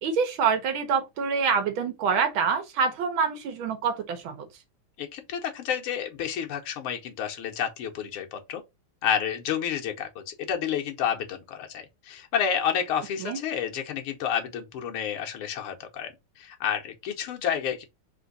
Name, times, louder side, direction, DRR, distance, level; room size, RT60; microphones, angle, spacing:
voice 1, 0.0-4.5 13.2-13.4, right 6 dB, 75° right, 1.7 m, -26 dB
voice 2, 5.0-8.6 9.0-17.8, left 8 dB, 90° left, 1.8 m, -30 dB
4.3 x 2.6 x 3.9 m
omnidirectional pair, 2.3 m